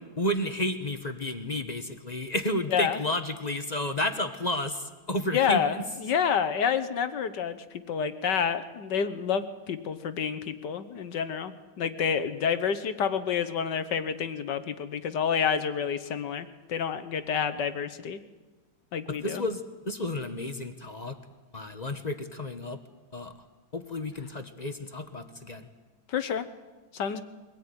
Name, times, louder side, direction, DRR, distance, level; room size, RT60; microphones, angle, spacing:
voice 1, 0.2-5.8 19.1-21.2 21.5-22.8 23.1-23.3 23.7-25.7, left 1 dB, 25° left, 8 dB, 0.9 m, -32 dB
voice 2, 5.3-18.2 18.9-19.4 26.1-26.5 26.9-27.2, left 7 dB, 60° left, 12 dB, 1.5 m, -29 dB
23.0 x 17.5 x 9.7 m, 1.3 s
omnidirectional pair, 2.3 m